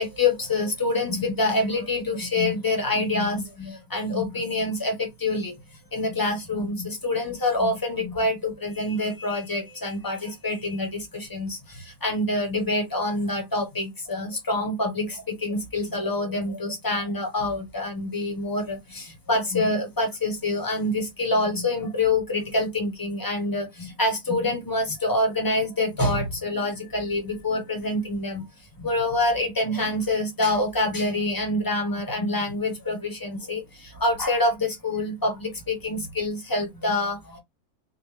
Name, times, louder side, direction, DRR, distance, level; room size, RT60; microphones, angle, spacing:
voice 1, 0.0-5.5 5.9-28.5 28.8-37.4, left 2 dB, 15° left, 1.2 m, -26 dB
4.5 x 2.7 x 3.3 m
omnidirectional pair, 1.7 m